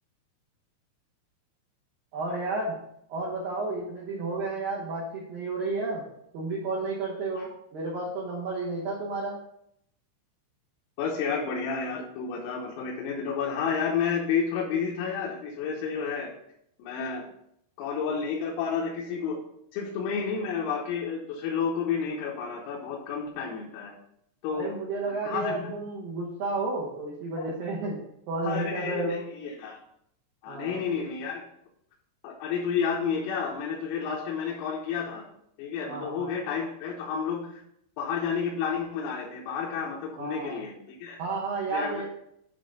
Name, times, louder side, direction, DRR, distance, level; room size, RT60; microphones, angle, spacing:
voice 1, 2.1-2.8 3.1-6.1 6.3-9.4 24.5-28.0 28.3-29.2 30.5-30.9 35.8-36.3 40.2-40.6 41.2-42.1, right 3 dB, 85° right, -4 dB, 2.0 m, -32 dB
voice 2, 11.0-16.3 16.8-17.2 17.8-19.4 19.7-23.9 24.4-24.7 25.2-25.7 27.4-27.5 28.4-29.8 30.4-31.4 32.2-35.3 35.6-37.6 38.0-41.2 41.7-42.0, left 6 dB, 85° left, -3 dB, 3.6 m, -31 dB
9.9 x 3.7 x 5.2 m, 0.75 s
omnidirectional pair, 5.9 m